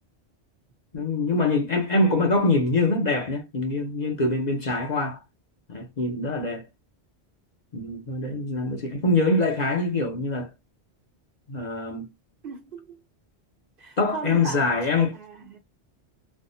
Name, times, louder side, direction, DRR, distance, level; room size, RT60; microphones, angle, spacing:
voice 1, 0.9-5.2 5.7-6.6 7.7-10.5 11.5-12.0 14.0-15.1, left 2 dB, 45° left, 0.8 m, -24 dB
voice 2, 12.4-13.0 13.8-14.8 15.1-15.6, right 4 dB, 55° right, 1.1 m, -37 dB
3.4 x 2.1 x 2.6 m
omnidirectional pair, 1.1 m